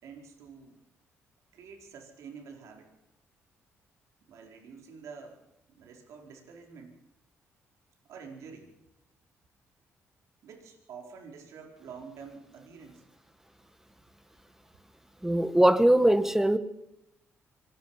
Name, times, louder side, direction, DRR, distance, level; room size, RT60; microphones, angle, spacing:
voice 1, 0.0-0.8 1.5-2.9 4.3-5.4 5.7-6.9 8.1-8.7 10.4-13.0, right 5 dB, 80° right, 2 dB, 4.5 m, -47 dB
voice 2, 15.2-16.6, right 1 dB, 5° right, 12 dB, 1.6 m, -21 dB
25.0 x 20.5 x 5.8 m, 0.88 s
cardioid pair, 85°, 5 cm